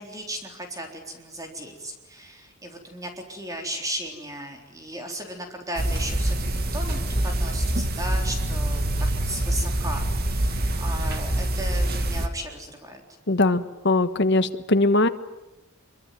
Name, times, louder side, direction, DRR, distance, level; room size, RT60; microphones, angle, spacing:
voice 1, 0.0-8.9 9.2-13.0, right 1 dB, 15° right, 3 dB, 3.7 m, -36 dB
sound 1, 5.7-12.3, right 1 dB, 45° right, 2.3 m, -25 dB
voice 2, 13.3-15.1, left 2 dB, 55° left, 10 dB, 1.4 m, -21 dB
25.5 x 24.0 x 9.4 m, 1.0 s
head